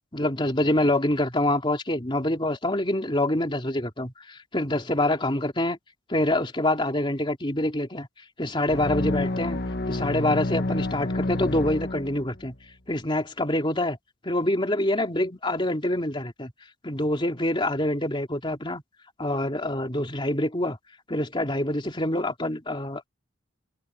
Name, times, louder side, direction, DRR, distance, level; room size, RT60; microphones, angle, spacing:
voice 1, 0.1-5.8 6.1-8.1 8.4-9.6 9.9-12.5 12.9-14.0 14.2-16.5 16.8-18.8 19.2-20.8 21.1-23.1, left 1 dB, 25° left, 3.1 m, -26 dB
sound 1, 8.7-12.5, left 2 dB, 55° left, 1.6 m, -29 dB
head